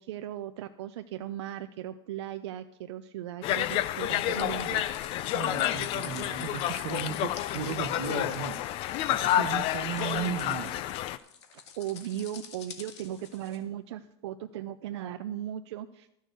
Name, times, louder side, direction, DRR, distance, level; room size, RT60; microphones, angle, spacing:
voice 1, 0.0-4.9 11.5-16.1, right 11 dB, 85° right, 8 dB, 0.5 m, -37 dB
Conversation, 3.4-11.2, left 13 dB, 40° left, 0.5 m, -29 dB
sound 1, 4.4-13.6, left 7 dB, 85° left, 1.7 m, -48 dB
voice 2, 5.3-8.6 9.1-10.8, right 9 dB, 60° right, 10 dB, 1.0 m, -36 dB
12.5 x 6.5 x 6.7 m, 0.81 s
supercardioid pair, 140°, 14 cm